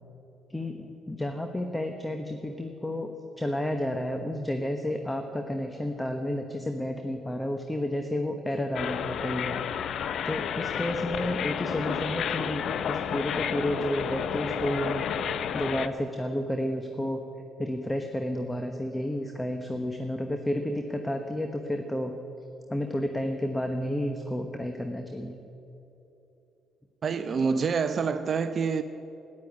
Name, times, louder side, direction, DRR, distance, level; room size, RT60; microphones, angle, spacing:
voice 1, 0.5-9.6 10.2-15.0 15.5-17.2 17.6-22.1 22.7-25.4, left 1 dB, 10° left, 6 dB, 1.2 m, -31 dB
sound 1, 8.7-15.9, left 8 dB, 65° left, 0.6 m, -31 dB
voice 2, 27.0-28.8, right 5 dB, 50° right, 11 dB, 0.6 m, -27 dB
12.5 x 10.5 x 9.5 m, 3.0 s
supercardioid pair, 60°, 0 cm